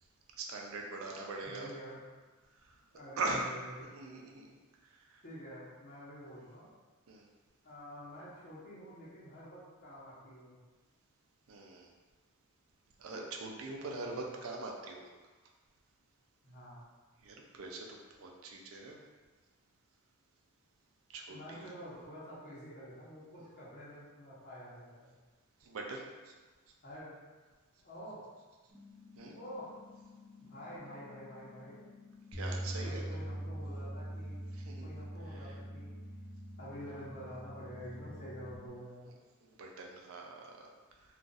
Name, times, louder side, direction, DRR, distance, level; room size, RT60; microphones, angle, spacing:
voice 1, 0.4-1.7 2.6-2.7 3.2-3.5 3.9-4.6 4.9-5.2 7.1-7.3 11.5-11.9 13.0-15.0 17.2-19.0 21.1-21.7 25.6-26.3 29.2-29.4 32.3-33.0 34.5-34.9 35.3-35.5 39.4-40.7, right 3 dB, 75° right, 1 dB, 0.5 m, -42 dB
voice 2, 1.4-2.0 2.9-3.9 5.2-6.7 7.6-10.5 13.6-14.2 16.4-16.8 21.3-25.1 26.8-27.1 27.8-28.2 29.3-29.8 30.4-31.8 32.8-34.4 34.8-35.9 36.6-39.0, equal, 50° left, -10 dB, 0.9 m, -48 dB
sound 1, 28.7-38.7, left 5 dB, 75° left, 1.1 m, -56 dB
Bass guitar, 32.3-38.6, right 1 dB, ahead, 0.5 m, -43 dB
2.4 x 2.4 x 3.9 m, 1.3 s
head